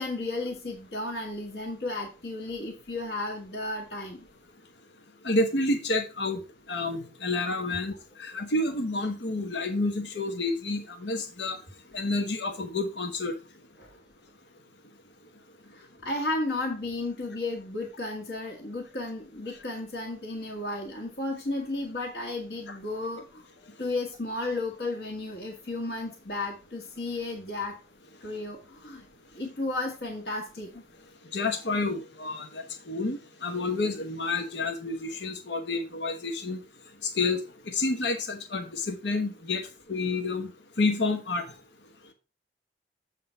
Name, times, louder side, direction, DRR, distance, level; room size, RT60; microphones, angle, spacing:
voice 1, 0.0-4.2 13.8-13.9 15.7-23.5 23.8-27.8 28.2-29.1 29.3-30.8, left 2 dB, 70° left, -3 dB, 1.5 m, -33 dB
voice 2, 5.2-6.4 6.7-7.9 8.2-11.6 11.9-13.3 22.7-22.8 31.3-36.6 37.0-37.4 37.7-40.5 40.8-41.4, left 2 dB, 85° left, 6 dB, 1.1 m, -29 dB
7.7 x 3.8 x 5.5 m, 0.32 s
head